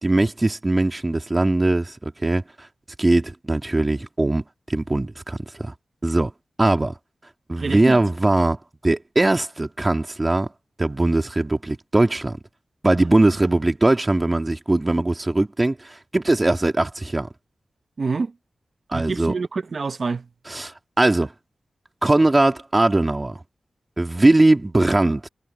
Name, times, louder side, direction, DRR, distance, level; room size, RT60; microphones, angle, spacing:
voice 1, 0.0-2.4 3.0-5.7 6.0-6.3 6.6-6.9 7.5-8.6 8.8-10.5 10.8-12.4 12.8-17.3 18.9-19.3 20.5-21.3 22.0-23.4 24.0-25.3, right 2 dB, 25° right, 2.3 m, -20 dB
voice 2, 7.6-8.0 18.0-18.3 18.9-20.2, right 4 dB, 55° right, 0.9 m, -26 dB
wide cardioid pair, 85°, 0 cm